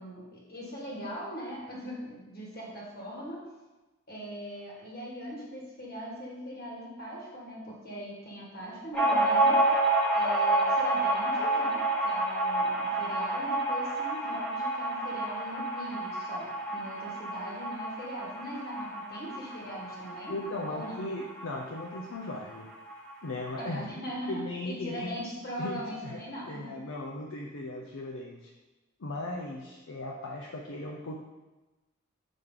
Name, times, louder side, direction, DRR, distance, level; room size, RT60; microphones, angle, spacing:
voice 1, 0.0-3.4 4.1-9.8 10.1-20.4 20.6-21.0 23.6-26.7, equal, 45° left, -3 dB, 1.6 m, -40 dB
sound 1, 8.9-22.1 22.3-22.4 22.7-23.5, right 2 dB, 5° left, 1.2 m, -29 dB
voice 2, 20.3-22.7 23.2-23.9 24.3-25.2 25.6-26.2 26.5-28.5 29.0-31.2, left 2 dB, 65° left, -1 dB, 0.6 m, -37 dB
6.3 x 5.0 x 3.7 m, 1.1 s
head